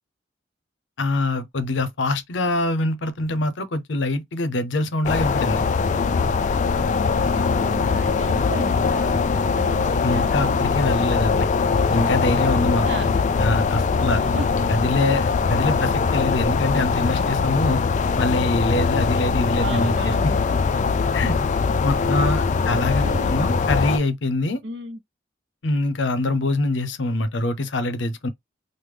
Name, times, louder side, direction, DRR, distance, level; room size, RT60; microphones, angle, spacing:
voice 1, 1.0-5.6 10.0-11.5 11.9-12.8 13.4-14.2 14.7-17.8 18.2-20.3 21.1-21.4 21.8-24.6 25.6-28.3, left 2 dB, 80° left, 0.6 m, -24 dB
sound 1, 5.0-24.0, left 5 dB, 40° left, 0.3 m, -21 dB
voice 2, 7.4-10.6 12.6-13.1 14.0-14.5 19.6-20.4 22.1-22.3 22.6-23.5 24.6-25.0, right 2 dB, 70° right, 0.9 m, -34 dB
3.3 x 2.1 x 3.3 m
head